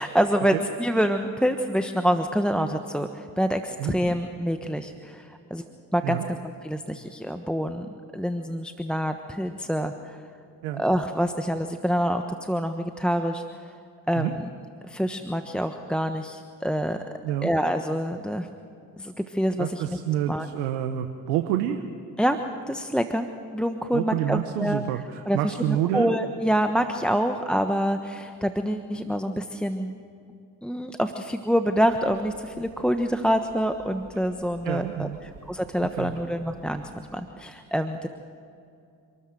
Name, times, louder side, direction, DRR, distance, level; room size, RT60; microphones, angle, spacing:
voice 1, 0.0-5.6 5.9-10.2 10.8-13.7 14.1-14.5 14.8-17.0 17.4-18.5 19.0-20.0 20.3-20.5 22.2-22.4 22.7-23.3 23.5-24.8 25.2-29.9 30.6-38.1, equal, ahead, 7 dB, 1.2 m, -26 dB
voice 2, 19.6-21.8 23.9-26.2 34.6-35.2 36.0-36.1, right 12 dB, 85° right, 7 dB, 1.0 m, -28 dB
sound 1, 31.9-37.2, right 2 dB, 70° right, 3.7 m, -52 dB
27.0 x 13.5 x 7.8 m, 2.5 s
hypercardioid pair, 50°, 48 cm